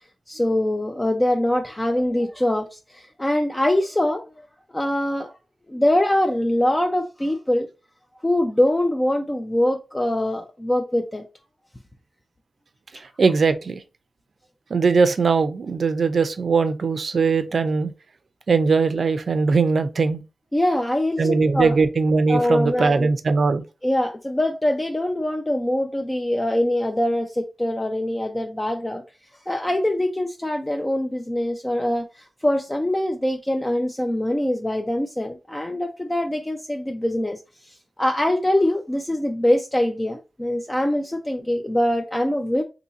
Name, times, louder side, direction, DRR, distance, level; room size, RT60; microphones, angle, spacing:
voice 1, 0.3-4.5 4.7-5.3 5.7-7.7 8.2-11.2 20.5-21.8 22.3-23.1 23.8-29.0 29.5-42.6, left 1 dB, 15° left, 0.4 m, -23 dB
voice 2, 12.9-13.8 14.7-17.9 18.5-20.2 21.2-23.6, right 4 dB, 60° right, 0.5 m, -20 dB
2.8 x 2.7 x 3.9 m
wide cardioid pair, 110°, 0 cm